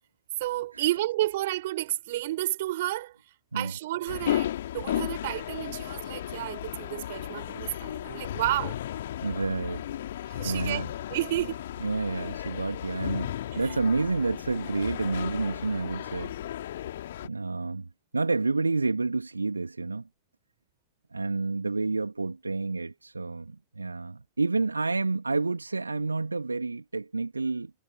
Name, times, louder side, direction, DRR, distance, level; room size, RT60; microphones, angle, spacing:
voice 1, 0.4-3.2 3.5-8.8 10.3-10.8 11.1-11.7 13.5-13.6, right 15 dB, 55° right, 5.3 m, -31 dB
sound 1, 4.1-17.3, left 12 dB, 60° left, 3.0 m, -34 dB
voice 2, 9.2-9.9 10.4-10.9 11.8-16.3 17.2-20.1 21.1-27.7, right 3 dB, 80° right, 2.7 m, -29 dB
figure-of-eight pair, 90°, 0 cm